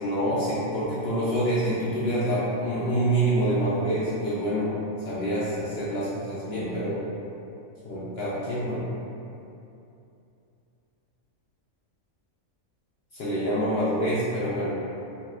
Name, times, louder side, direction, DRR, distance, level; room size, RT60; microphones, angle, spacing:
voice 1, 0.0-7.0 7.8-8.8 13.1-14.7, right 1 dB, 65° left, -9 dB, 0.6 m, -26 dB
2.8 x 2.3 x 3.1 m, 2.7 s
omnidirectional pair, 1.4 m